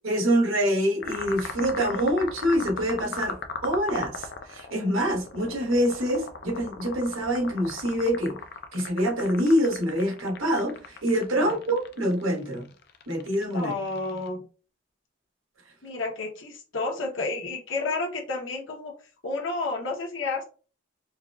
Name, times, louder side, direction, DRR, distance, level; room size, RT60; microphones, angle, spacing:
voice 1, 0.0-8.4 8.7-12.7 13.1-13.7, equal, 90° right, 0 dB, 1.1 m, -25 dB
sound 1, 1.0-14.3, left 5 dB, 55° left, 0.4 m, -37 dB
voice 2, 13.5-14.5 15.8-18.9 19.2-20.4, left 3 dB, 70° left, 1 dB, 1.0 m, -31 dB
4.5 x 2.3 x 2.3 m, 0.38 s
head